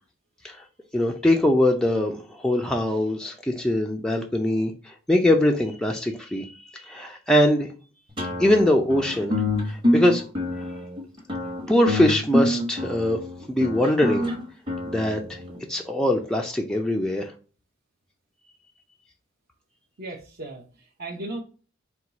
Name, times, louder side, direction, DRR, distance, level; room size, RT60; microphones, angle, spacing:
voice 1, 0.9-7.7 8.4-9.3 9.7-10.2 11.7-13.2 13.5-14.3 14.9-15.4 15.7-17.3, left 1 dB, 5° left, 1 dB, 0.3 m, -22 dB
sound 1, 8.2-15.6, left 1 dB, 25° right, 1.0 m, -26 dB
voice 2, 20.0-21.4, right 2 dB, 50° right, -2 dB, 0.7 m, -36 dB
4.4 x 2.3 x 3.9 m, 0.37 s
head